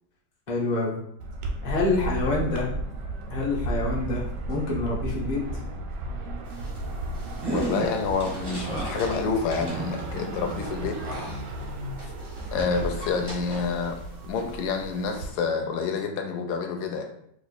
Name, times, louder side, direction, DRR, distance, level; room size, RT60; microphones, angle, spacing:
voice 1, 0.5-1.0 1.6-2.7 3.3-5.4, left 3 dB, 40° left, -4 dB, 0.7 m, -27 dB
sound 1, 1.2-15.3, right 2 dB, 85° right, 1.3 m, -35 dB
sound 2, 4.0-12.0, equal, 70° right, 0.8 m, -39 dB
sound 3, 6.5-14.1 14.4-15.3, right 1 dB, 35° right, 0.4 m, -36 dB
voice 2, 7.5-11.0 12.5-14.0 14.3-17.1, left 5 dB, 75° left, 4 dB, 1.1 m, -28 dB
3.0 x 2.4 x 4.0 m, 0.72 s
omnidirectional pair, 1.8 m